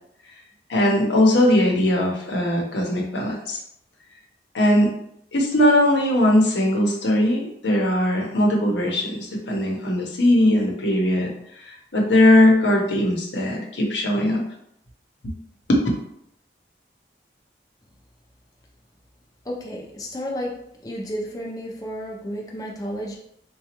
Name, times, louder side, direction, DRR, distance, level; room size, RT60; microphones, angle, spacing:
voice 1, 0.7-3.6 4.5-4.9 5.3-11.3 11.6-14.4 15.2-15.3 15.7-15.8, left 1 dB, 85° left, -1 dB, 0.8 m, -19 dB
voice 2, 19.5-20.6 20.8-23.2, equal, 20° left, -2 dB, 0.4 m, -32 dB
4.0 x 2.3 x 2.9 m, 0.74 s
head